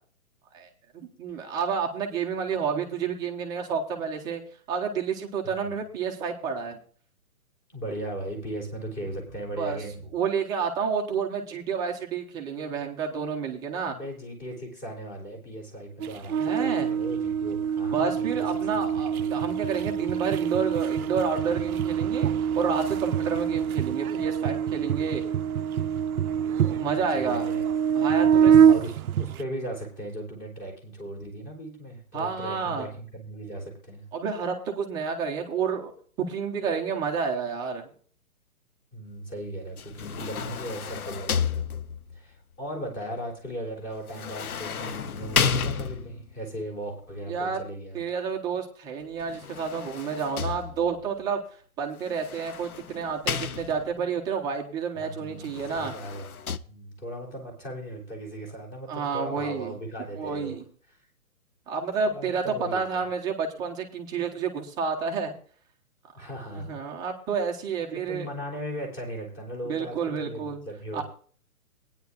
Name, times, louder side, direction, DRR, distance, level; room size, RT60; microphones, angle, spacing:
voice 1, 0.9-4.4 4.7-6.8 9.6-9.8 10.1-13.9 16.4-16.9 17.9-25.2 26.6-27.5 27.9-28.7 32.1-32.9 34.1-35.9 36.2-37.9 47.3-47.6 47.9-51.4 51.8-55.9 58.9-59.8 60.1-60.6 61.7-62.4 62.7-65.3 66.5-68.3 69.6-70.6 70.9-71.0, right 6 dB, 10° right, 2 dB, 0.6 m, -30 dB
voice 2, 7.7-10.0 13.8-18.5 18.7-19.4 26.7-27.6 28.3-34.1 38.9-41.7 42.1-48.0 55.0-55.5 55.7-56.4 56.7-60.6 62.0-63.1 66.1-66.8 68.1-71.0, right 1 dB, 20° left, 0 dB, 3.3 m, -37 dB
sound 1, 16.0-29.4, right 8 dB, 75° right, 0.5 m, -25 dB
sound 2, 39.8-42.2 44.1-46.3 49.2-51.1 52.1-54.0 55.4-56.6, left 6 dB, 85° left, 0.7 m, -32 dB
17.5 x 9.6 x 2.4 m, 0.43 s
figure-of-eight pair, 135°, 43 cm